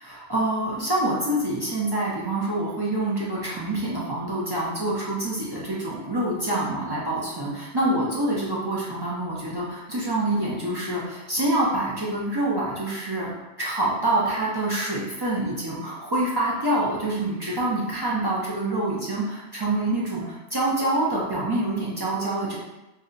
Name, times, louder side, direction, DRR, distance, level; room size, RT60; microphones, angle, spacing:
voice 1, 0.0-13.3 13.6-22.6, right 1 dB, 35° right, -6 dB, 0.4 m, -26 dB
2.7 x 2.1 x 3.7 m, 1.0 s
omnidirectional pair, 1.1 m